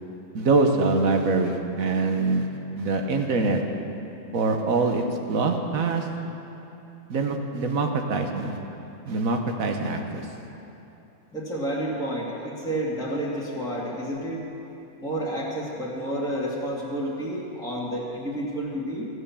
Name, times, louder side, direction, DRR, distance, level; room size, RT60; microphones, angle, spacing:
voice 1, 0.3-2.5 2.8-3.6 4.3-6.1 7.1-8.6 9.1-10.3, right 3 dB, 70° right, 4 dB, 1.4 m, -24 dB
voice 2, 11.3-14.4 15.0-19.1, right 1 dB, 5° left, -6 dB, 1.9 m, -30 dB
16.5 x 8.0 x 7.0 m, 2.9 s
omnidirectional pair, 1.5 m